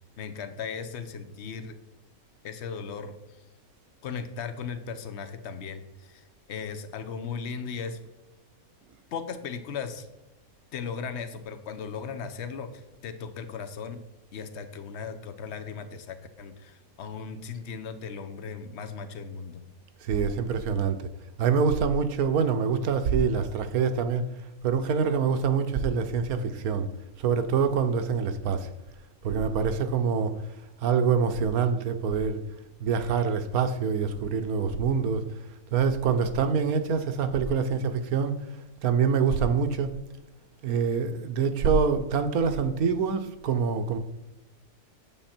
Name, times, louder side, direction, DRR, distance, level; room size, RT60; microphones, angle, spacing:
voice 1, 0.2-1.8 2.4-3.1 4.0-8.0 9.1-10.1 10.7-14.0 14.3-19.6, left 6 dB, 55° left, 9 dB, 1.0 m, -37 dB
voice 2, 20.0-21.0 21.4-24.2 24.6-26.9 27.2-28.7 29.2-30.3 30.8-32.4 32.8-35.2 35.7-38.4 38.8-39.9 40.6-44.0, right 6 dB, 85° right, 9 dB, 1.3 m, -25 dB
8.9 x 7.3 x 4.3 m, 1.0 s
omnidirectional pair, 1.5 m